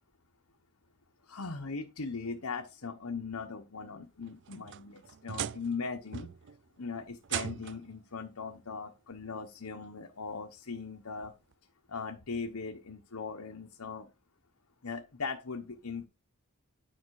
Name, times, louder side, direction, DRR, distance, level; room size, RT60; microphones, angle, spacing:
voice 1, 1.3-6.3 6.8-11.3 11.9-14.1 14.8-16.1, left 4 dB, 75° left, 4 dB, 1.1 m, -39 dB
sound 1, 4.2-5.8 6.1-6.6 7.2-7.9 9.1-9.2 9.8-9.9 11.5-11.6, right 9 dB, 55° right, 0.5 m, -39 dB
10.0 x 5.6 x 4.8 m, 0.28 s
head